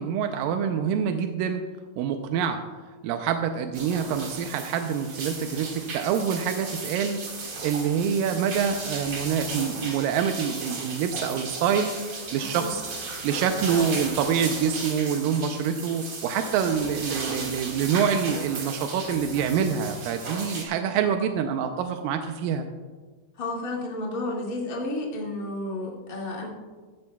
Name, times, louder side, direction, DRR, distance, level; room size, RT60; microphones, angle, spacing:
voice 1, 0.0-1.6 2.0-2.6 3.0-11.9 12.3-12.8 13.2-22.7, right 7 dB, 85° right, 6 dB, 2.0 m, -26 dB
sound 1, 3.7-20.6, right 3 dB, 40° right, 2.2 m, -35 dB
voice 2, 12.3-12.8 13.7-14.0 23.3-26.5, left 2 dB, 30° left, -3 dB, 1.7 m, -32 dB
14.5 x 14.0 x 2.3 m, 1.4 s
omnidirectional pair, 4.6 m